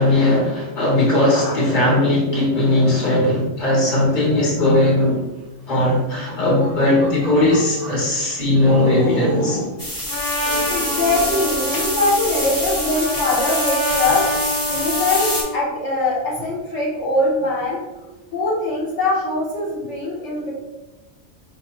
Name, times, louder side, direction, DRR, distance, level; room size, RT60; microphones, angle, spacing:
voice 1, 0.0-5.2 5.7-9.6, left 1 dB, 40° left, -4 dB, 1.3 m, -18 dB
sound 1, 6.0-8.1 8.6-9.8 10.3-11.7, equal, 50° right, 0.5 m, -28 dB
sound 2, 9.8-15.4, left 1 dB, 20° left, 0.8 m, -26 dB
Trumpet, 10.1-15.6, left 1 dB, 85° left, 1.4 m, -27 dB
voice 2, 10.7-17.8 18.3-20.5, left 2 dB, 70° left, -4 dB, 1.3 m, -22 dB
4.7 x 3.0 x 2.9 m, 1.0 s
omnidirectional pair, 1.3 m